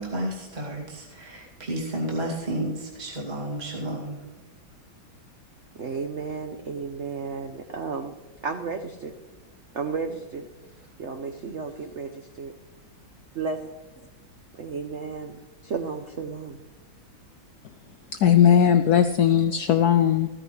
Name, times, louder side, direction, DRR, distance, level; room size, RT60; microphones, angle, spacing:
voice 1, 0.0-4.2, right 1 dB, 20° right, -3 dB, 2.4 m, -31 dB
voice 2, 5.8-8.1 8.4-9.1 9.7-10.5 11.0-12.5 13.4-13.7 14.6-16.6, right 5 dB, 70° right, 6 dB, 0.6 m, -33 dB
voice 3, 18.2-20.3, left 9 dB, 85° left, 9 dB, 0.8 m, -18 dB
15.0 x 14.0 x 3.3 m, 1.2 s
omnidirectional pair, 2.3 m